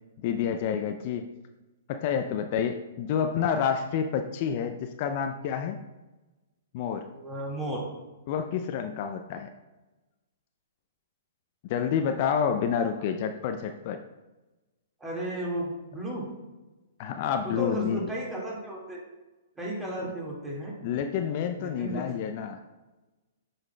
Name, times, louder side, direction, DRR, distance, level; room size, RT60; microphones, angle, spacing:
voice 1, 0.2-1.3 1.9-5.8 6.7-7.1 8.3-9.5 11.7-14.0 17.0-18.1 20.8-22.6, left 7 dB, 45° left, 7 dB, 0.4 m, -29 dB
voice 2, 7.1-7.8 15.0-16.3 17.4-19.0 19.6-20.7 21.6-22.0, right 1 dB, 10° right, -3 dB, 1.8 m, -34 dB
7.8 x 5.6 x 2.2 m, 1.1 s
hypercardioid pair, 120°, 0 cm